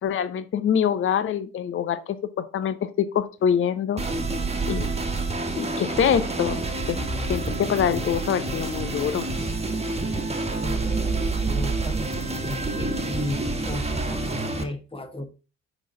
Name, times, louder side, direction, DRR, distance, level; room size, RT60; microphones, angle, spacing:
voice 1, 0.0-4.0 4.7-4.9 5.6-7.0 7.3-9.3, left 8 dB, 35° left, 0.7 m, -25 dB
sound 1, 4.0-14.6, right 2 dB, 15° right, 1.5 m, -28 dB
voice 2, 10.0-15.3, left 1 dB, 15° left, 1.2 m, -36 dB
9.8 x 3.9 x 3.8 m
figure-of-eight pair, 45°, 38 cm